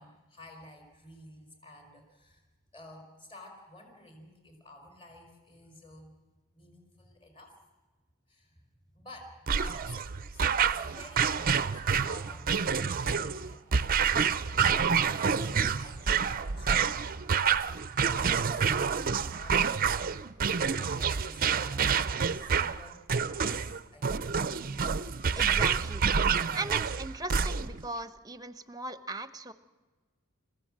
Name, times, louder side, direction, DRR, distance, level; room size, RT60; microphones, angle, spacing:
voice 1, 0.0-2.5 2.7-6.2 6.5-7.6 8.3-8.7 8.9-10.4 10.7-13.9 15.0-17.3 17.9-20.4 20.8-21.9 22.3-24.3, left 1 dB, 25° left, 4 dB, 4.5 m, -51 dB
sound 1, 9.5-27.8, right 6 dB, 40° right, 0.6 m, -28 dB
voice 2, 25.3-26.1 26.5-29.5, right 2 dB, 15° right, 12 dB, 1.0 m, -38 dB
30.0 x 15.5 x 7.7 m, 1.3 s
head